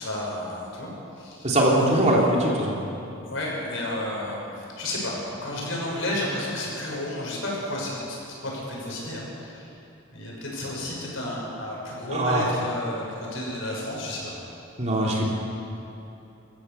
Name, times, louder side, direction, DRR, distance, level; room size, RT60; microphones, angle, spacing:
voice 1, 0.0-2.5 3.2-8.0 8.4-9.7 10.1-14.3, left 1 dB, 65° left, -3 dB, 6.4 m, -32 dB
voice 2, 1.4-2.8 12.1-12.4 14.8-15.3, right 1 dB, 35° right, -2 dB, 3.2 m, -21 dB
26.0 x 14.0 x 7.1 m, 3.0 s
head